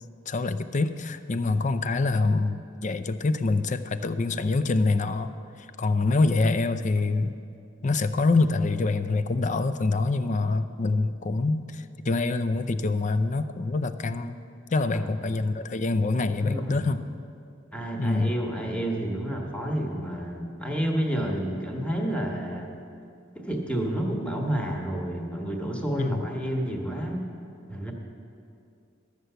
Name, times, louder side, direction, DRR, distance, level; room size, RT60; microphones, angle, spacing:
voice 1, 0.3-5.3 5.8-7.3 7.8-14.4 14.7-17.0 18.0-18.3 26.0-26.2, left 3 dB, 40° left, 11 dB, 0.5 m, -25 dB
voice 2, 14.9-15.3 16.4-16.8 17.7-22.7 23.3-27.3 27.7-27.9, right 1 dB, 5° left, 1 dB, 1.3 m, -30 dB
13.0 x 6.7 x 8.0 m, 2.5 s
head